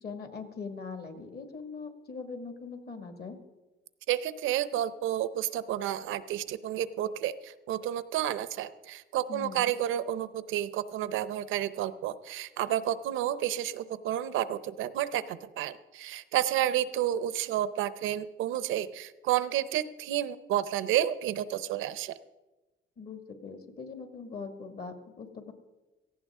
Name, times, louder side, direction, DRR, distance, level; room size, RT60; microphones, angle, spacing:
voice 1, 0.0-3.4 9.3-9.7 23.0-25.5, left 4 dB, 55° left, 5 dB, 2.1 m, -41 dB
voice 2, 4.1-22.2, right 11 dB, 90° right, 14 dB, 0.7 m, -31 dB
17.5 x 15.0 x 3.7 m, 1.1 s
cardioid pair, 90°, 20 cm